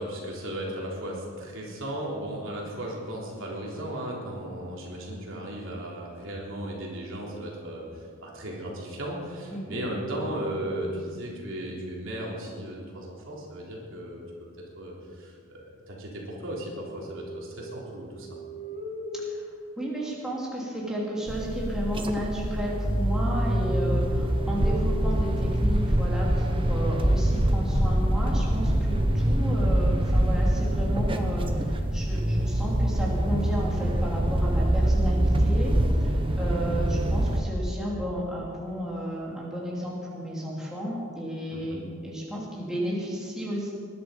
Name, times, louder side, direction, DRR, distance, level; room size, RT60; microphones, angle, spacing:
voice 1, 0.0-14.2 14.8-18.3 41.5-41.8, right 1 dB, 60° right, -3 dB, 3.6 m, -36 dB
voice 2, 9.5-9.8 19.2-19.5 19.8-43.7, equal, 5° right, -5 dB, 2.9 m, -33 dB
sound 1, 9.9-11.8 16.2-20.7 22.1-28.2, equal, 35° left, 1.4 m, -40 dB
sound 2, 21.3-37.4, right 1 dB, 25° right, 1.1 m, -24 dB
21.0 x 11.5 x 5.2 m, 2.2 s
head